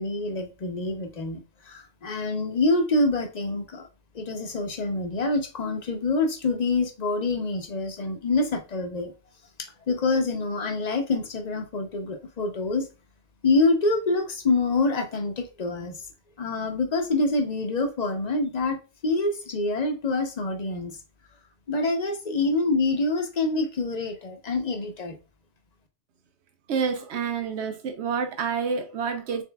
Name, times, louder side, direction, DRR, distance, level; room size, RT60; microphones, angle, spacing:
voice 1, 0.0-1.4 1.7-3.8 4.1-9.1 9.9-12.8 13.4-16.0 16.4-18.8 19.0-21.0 21.7-25.2, left 3 dB, 45° left, 0.8 m, -26 dB
voice 2, 26.7-29.4, right 6 dB, 90° right, 0.9 m, -28 dB
4.3 x 3.7 x 2.2 m
omnidirectional pair, 1.1 m